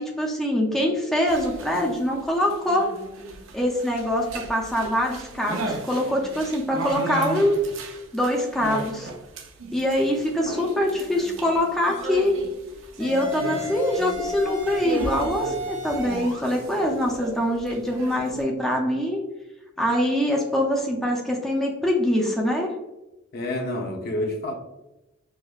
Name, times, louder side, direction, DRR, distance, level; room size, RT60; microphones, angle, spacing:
voice 1, 0.0-2.9 3.5-7.6 8.1-9.1 9.7-12.4 13.0-19.2 19.8-22.7, left 1 dB, ahead, -2 dB, 0.4 m, -24 dB
sound 1, 1.3-18.4, right 2 dB, 85° right, 0.5 m, -36 dB
sound 2, 11.9-12.2 13.0-16.5, left 1 dB, 65° right, 1.0 m, -34 dB
voice 2, 23.3-24.5, left 1 dB, 50° left, 1 dB, 0.6 m, -28 dB
4.7 x 2.1 x 2.3 m, 0.97 s
head